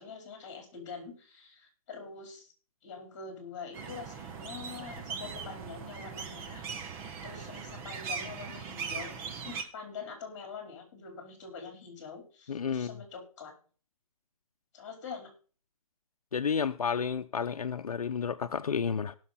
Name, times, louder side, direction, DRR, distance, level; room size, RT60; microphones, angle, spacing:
voice 1, 0.0-2.5 2.8-6.6 7.2-9.2 9.4-13.5 14.7-15.3, left 5 dB, 30° left, 4.3 m, -44 dB
sound 1, 3.7-9.6, right 6 dB, 10° right, 0.6 m, -40 dB
voice 2, 12.5-12.9 16.3-19.2, left 6 dB, 85° left, 0.7 m, -31 dB
18.5 x 6.4 x 4.2 m
hypercardioid pair, 160°, 19 cm